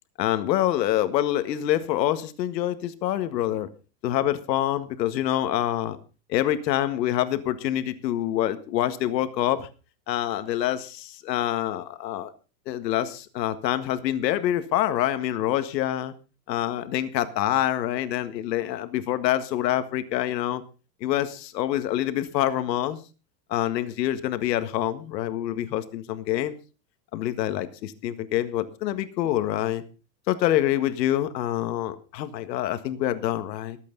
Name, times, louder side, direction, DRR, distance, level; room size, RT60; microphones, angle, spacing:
voice 1, 0.2-3.7 4.0-6.0 6.3-9.7 10.1-12.3 12.7-16.1 16.5-20.6 21.0-23.0 23.5-26.6 27.1-29.8 30.3-33.8, left 12 dB, 75° left, 10 dB, 1.9 m, -26 dB
24.0 x 8.5 x 4.0 m, 0.34 s
supercardioid pair, 165°, 50 cm